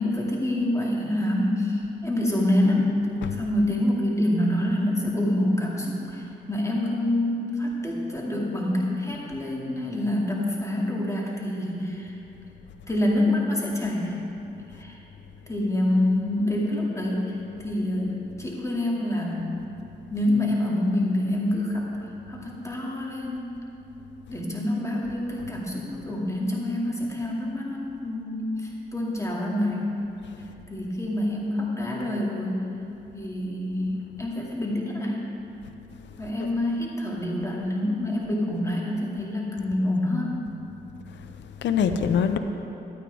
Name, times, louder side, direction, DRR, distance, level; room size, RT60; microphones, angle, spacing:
voice 1, 0.0-2.9 3.3-12.1 12.9-14.2 14.7-15.0 15.5-17.4 17.6-19.5 20.1-21.9 22.3-23.5 24.3-29.9 30.7-32.6 33.1-35.3 36.2-40.4, left 1 dB, 15° left, -3 dB, 2.2 m, -26 dB
voice 2, 41.1-42.4, left 7 dB, 75° left, 8 dB, 0.6 m, -25 dB
12.0 x 9.2 x 3.5 m, 2.9 s
cardioid pair, 60°, 19 cm